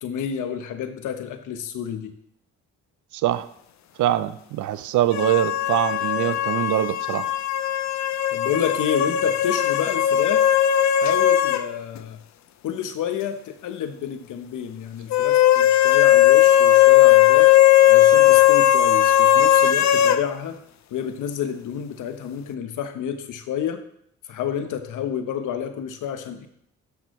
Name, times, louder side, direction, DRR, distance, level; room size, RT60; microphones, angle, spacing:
voice 1, 0.0-2.1 8.3-10.5 10.9-12.2 12.6-17.5 17.9-20.6 20.9-23.8 24.3-26.5, left 8 dB, 80° left, 8 dB, 1.0 m, -29 dB
voice 2, 3.1-3.5 4.0-7.3, right 13 dB, 75° right, 15 dB, 0.6 m, -23 dB
sound 1, 5.1-11.7 12.0-12.1 15.1-20.2, left 12 dB, 65° left, 0.6 m, -17 dB
13.5 x 6.0 x 3.1 m, 0.73 s
supercardioid pair, 65°, 30 cm